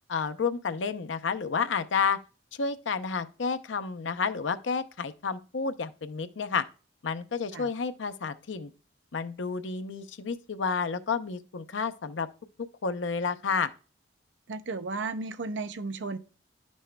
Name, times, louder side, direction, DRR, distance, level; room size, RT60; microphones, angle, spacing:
voice 1, 0.1-2.2 2.5-6.6 7.0-8.7 9.1-12.3 12.8-13.7, left 5 dB, 85° left, 0.6 m, -30 dB
voice 2, 14.5-16.2, right 3 dB, 75° right, 0.6 m, -34 dB
10.5 x 6.2 x 2.2 m
head